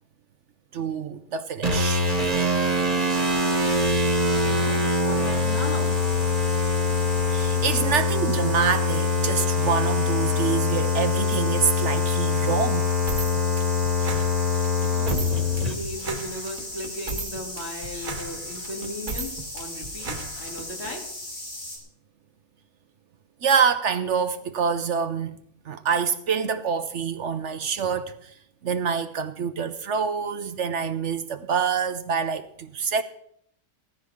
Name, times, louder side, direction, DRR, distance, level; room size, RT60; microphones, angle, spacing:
voice 1, 0.7-2.1 7.3-13.0 23.4-25.4 25.6-28.3 28.6-33.0, right 6 dB, 65° right, 1.0 m, -26 dB
sound 1, 1.6-15.7, left 3 dB, 30° right, 1.8 m, -23 dB
sound 2, 3.1-21.8, left 1 dB, 80° left, 4.3 m, -38 dB
voice 2, 4.3-6.0 14.9-21.0, left 1 dB, 50° left, 3.2 m, -37 dB
sound 3, 13.1-20.9, right 3 dB, 85° right, 2.0 m, -36 dB
16.5 x 14.5 x 3.7 m
omnidirectional pair, 1.4 m